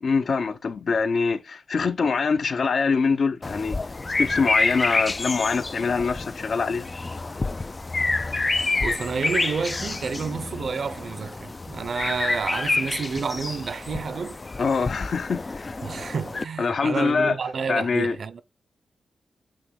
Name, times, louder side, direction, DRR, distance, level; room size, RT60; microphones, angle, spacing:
voice 1, 0.0-3.8 4.2-6.9 14.6-15.8 16.6-17.4 17.7-18.2, left 5 dB, 55° left, 0.7 m, -24 dB
sound 1, 3.4-16.4, left 3 dB, 25° left, 0.3 m, -28 dB
voice 2, 8.8-14.4 15.8-18.4, right 5 dB, 60° right, 0.7 m, -30 dB
8.5 x 3.0 x 3.6 m
wide cardioid pair, 135°, 0 cm